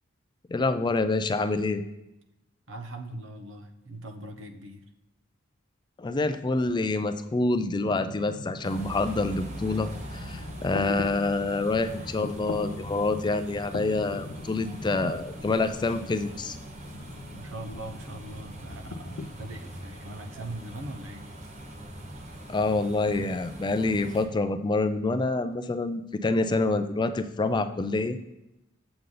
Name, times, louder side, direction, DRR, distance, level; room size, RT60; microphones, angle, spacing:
voice 1, 0.5-1.8 6.0-16.6 22.5-28.2, left 3 dB, 25° left, 10 dB, 0.4 m, -27 dB
voice 2, 2.7-4.8 17.3-21.3, right 1 dB, 70° right, 6 dB, 0.9 m, -41 dB
sound 1, 7.8-19.3, left 3 dB, 75° left, 0.5 m, -41 dB
sound 2, 8.6-24.2, right 1 dB, 35° right, 1.1 m, -42 dB
7.8 x 6.8 x 3.8 m, 0.89 s
head